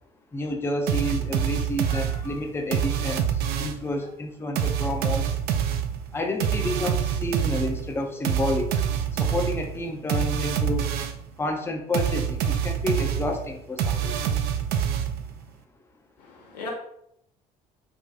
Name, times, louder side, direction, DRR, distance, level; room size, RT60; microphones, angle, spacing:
voice 1, 0.3-5.4 6.1-8.8 9.1-10.9 11.4-14.3, left 1 dB, 10° left, 3 dB, 0.5 m, -30 dB
sound 1, 0.9-3.9 4.6-11.3 11.9-15.4, right 8 dB, 50° right, 0.4 m, -26 dB
voice 2, 1.8-2.3 16.2-16.7, left 3 dB, 80° left, -2 dB, 0.8 m, -39 dB
3.5 x 2.2 x 2.6 m, 0.73 s
figure-of-eight pair, 55°, 21 cm